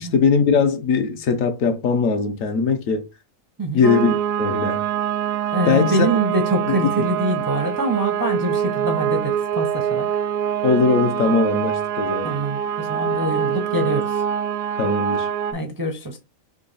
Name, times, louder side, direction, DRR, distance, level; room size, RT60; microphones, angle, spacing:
voice 1, 0.0-3.0 3.7-4.8 5.7-6.1 6.7-7.1 10.6-12.3 14.8-15.3, left 5 dB, 70° left, 1.1 m, -20 dB
sound 1, 3.8-15.5, right 9 dB, 80° right, 1.0 m, -24 dB
voice 2, 5.5-10.1 12.2-14.2 15.5-16.2, right 1 dB, 30° right, 0.3 m, -24 dB
3.9 x 3.0 x 4.0 m
omnidirectional pair, 1.4 m